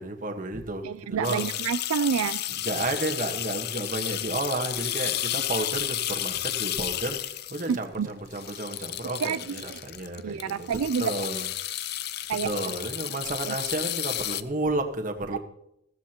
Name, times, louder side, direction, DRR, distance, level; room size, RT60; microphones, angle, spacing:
voice 1, 0.0-1.5 2.6-10.7 11.0-11.5 12.4-15.4, right 2 dB, 40° right, 1.4 m, -32 dB
voice 2, 0.8-2.4 7.7-8.1 9.2-9.8 10.2-11.1 12.3-12.7 13.5-13.6, right 7 dB, 85° right, 0.4 m, -29 dB
sound 1, 1.2-14.4, left 12 dB, 50° left, 0.5 m, -32 dB
15.5 x 14.5 x 3.0 m
head